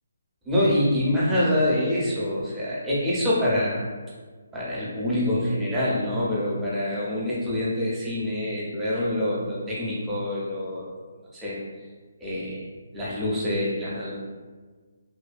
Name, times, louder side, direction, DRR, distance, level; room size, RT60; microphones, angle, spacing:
voice 1, 0.5-3.8 4.5-11.0 11.3-11.6 12.2-12.7 12.9-14.3, left 1 dB, 5° right, -9 dB, 0.6 m, -26 dB
2.6 x 2.2 x 2.4 m, 1.4 s
hypercardioid pair, 160°, 0 cm